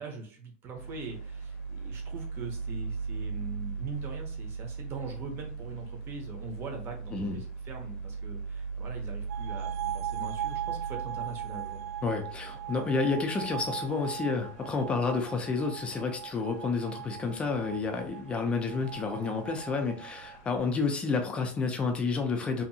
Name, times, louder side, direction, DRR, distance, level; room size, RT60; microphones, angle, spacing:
voice 1, 0.0-11.9, right 4 dB, 30° right, 3 dB, 0.7 m, -42 dB
sound 1, 0.8-20.7, right 4 dB, 70° left, 0.6 m, -40 dB
sound 2, 9.3-20.4, right 12 dB, 75° right, 0.4 m, -40 dB
voice 2, 12.0-22.6, left 4 dB, 15° left, 4 dB, 0.4 m, -30 dB
2.7 x 2.5 x 2.6 m, 0.43 s
supercardioid pair, 170°, 8 cm